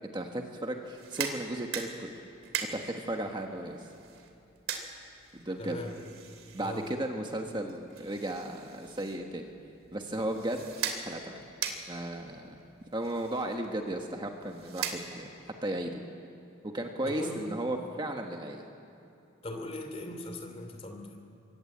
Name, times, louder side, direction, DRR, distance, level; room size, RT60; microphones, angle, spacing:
voice 1, 0.0-2.1 2.7-3.9 5.3-5.8 6.5-9.5 9.9-10.7 10.9-11.4 11.9-12.6 12.9-15.3 15.6-16.0 16.6-18.7, right 1 dB, 20° right, 3 dB, 1.4 m, -35 dB
sound 1, 0.8-15.5, right 7 dB, 85° right, 2.9 m, -41 dB
voice 2, 5.6-5.9 6.6-6.9 17.1-17.5 19.4-21.3, left 1 dB, 30° left, 5 dB, 2.9 m, -39 dB
27.5 x 23.5 x 8.7 m, 2.7 s
head